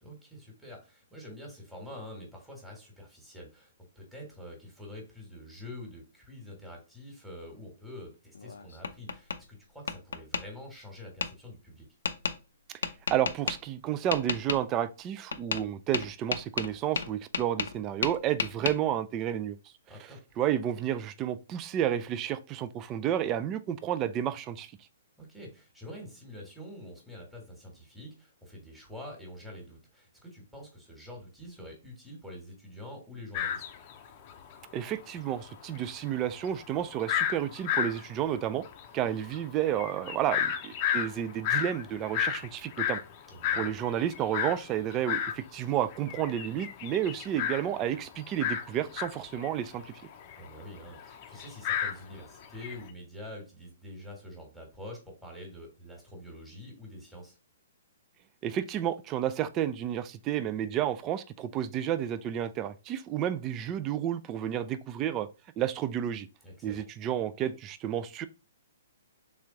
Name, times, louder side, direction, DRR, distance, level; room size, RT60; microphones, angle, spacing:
voice 1, 0.0-11.9 19.9-20.2 25.2-33.6 43.3-43.7 50.4-57.4 66.4-66.8, left 1 dB, ahead, 1.4 m, -46 dB
Tap, 8.4-9.4 9.9-10.4 11.2-11.3 12.1-12.4 12.8-13.6 14.1-14.6 15.3-15.7 15.9-17.8 18.0-18.8, left 5 dB, 80° left, 0.5 m, -31 dB
voice 2, 13.1-19.6 20.4-24.7 34.7-38.6 38.9-43.0 43.6-49.9 58.4-65.3 65.6-66.3 66.6-68.3, right 10 dB, 25° right, 0.4 m, -31 dB
sound 1, 33.3-34.6 34.8-34.9 35.2-45.4 45.8-52.8, left 9 dB, 40° left, 0.6 m, -33 dB
3.4 x 3.1 x 3.7 m
hypercardioid pair, 135°, 0 cm